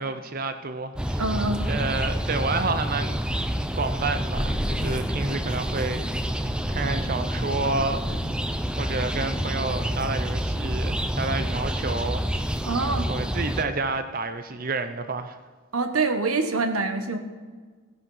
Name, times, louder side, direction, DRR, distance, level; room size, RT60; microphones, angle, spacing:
voice 1, 0.0-1.2 1.7-3.2 3.7-6.1 6.3-8.0 8.8-12.6 13.1-15.4, right 3 dB, 40° right, 10 dB, 0.7 m, -29 dB
sound 1, 0.9-13.6, equal, 5° right, 0.5 m, -28 dB
voice 2, 1.2-1.7 12.6-13.1 15.7-17.2, right 3 dB, 85° right, 8 dB, 1.3 m, -25 dB
Thunder, 4.2-13.8, equal, 10° left, 0.9 m, -37 dB
15.0 x 10.5 x 5.6 m, 1.5 s
head